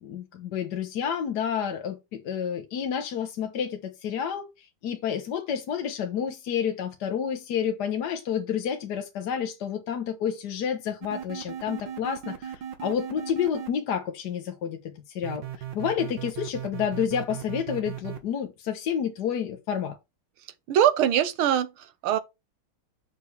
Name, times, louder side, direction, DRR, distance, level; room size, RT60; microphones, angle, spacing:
voice 1, 0.0-15.4 15.7-20.0, left 8 dB, 60° left, 1.3 m, -30 dB
sound 1, 11.0-13.7 15.2-18.2, right 9 dB, 60° right, 1.8 m, -37 dB
voice 2, 20.7-22.2, right 10 dB, 80° right, 1.7 m, -23 dB
7.0 x 6.6 x 3.2 m
omnidirectional pair, 2.4 m